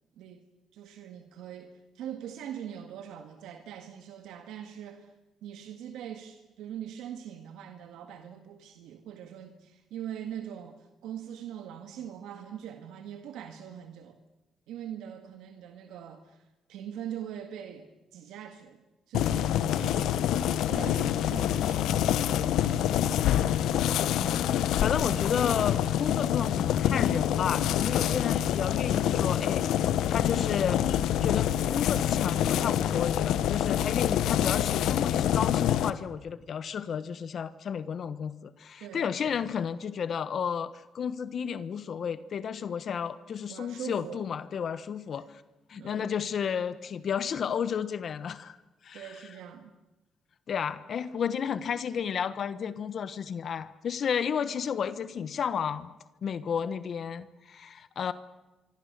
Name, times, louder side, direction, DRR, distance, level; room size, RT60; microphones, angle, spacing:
voice 1, 0.7-5.1 5.4-14.2 14.7-20.3 20.6-23.7 38.8-39.1 43.5-44.2 45.8-46.1 48.9-49.7, right 9 dB, 90° right, 6 dB, 1.8 m, -42 dB
sound 1, 19.1-35.9, left 11 dB, 85° left, 1.1 m, -26 dB
voice 2, 24.2-24.5 24.8-30.8 31.2-45.4 45.7-48.6 48.8-49.1 50.5-55.9 56.2-58.1, left 7 dB, 55° left, 13 dB, 1.2 m, -32 dB
26.5 x 25.0 x 6.8 m, 1.1 s
cardioid pair, 90°, 0 cm